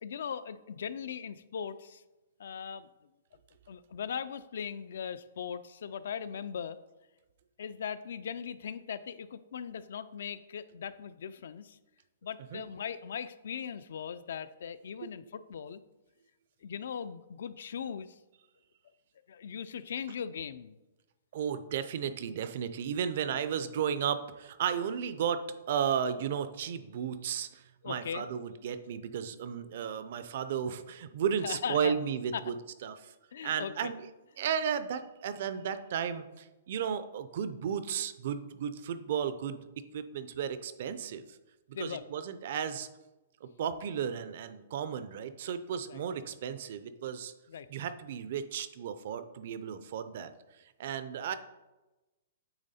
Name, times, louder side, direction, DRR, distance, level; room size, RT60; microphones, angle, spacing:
voice 1, 0.0-2.0 2.4-2.9 3.7-6.8 7.6-11.8 12.2-15.8 16.6-18.2 19.3-20.8 27.8-28.2 31.4-31.9 32.3-32.4 33.3-33.9 41.7-42.0 45.9-46.0 47.5-47.7, left 7 dB, 60° left, 15 dB, 0.3 m, -39 dB
voice 2, 21.3-32.5 32.8-33.1 33.4-34.0 34.4-41.2 41.8-42.9 43.4-47.3 47.7-50.3 50.8-51.3, right 8 dB, 40° right, 12 dB, 0.4 m, -34 dB
8.8 x 3.4 x 4.2 m, 1.1 s
hypercardioid pair, 175°, 0 cm